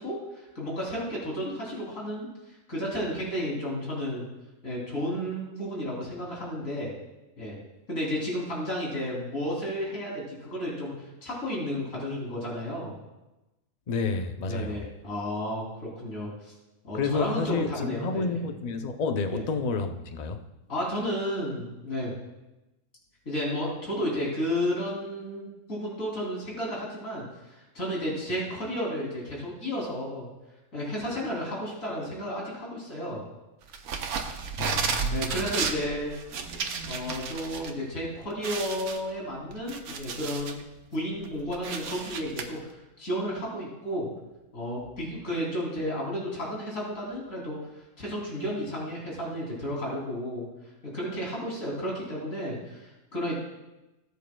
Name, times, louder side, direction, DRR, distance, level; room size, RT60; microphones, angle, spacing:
voice 1, 0.0-2.3 2.7-4.2 4.6-6.9 7.4-7.5 7.9-12.9 14.5-16.5 16.8-18.4 19.3-19.4 20.7-22.1 23.3-30.3 30.7-33.2 35.1-36.1 36.9-40.6 40.9-44.1 44.5-50.5 50.8-53.4, equal, 70° left, 3.6 m, -32 dB
voice 2, 13.9-14.8 16.9-20.4 34.6-35.3, left 4 dB, 45° left, 0.5 m, -30 dB
sound 1, 33.7-37.7 38.0-38.1 38.4-40.6 41.1-42.4, right 5 dB, 85° right, 1.3 m, -33 dB
18.0 x 8.3 x 2.3 m
omnidirectional pair, 1.5 m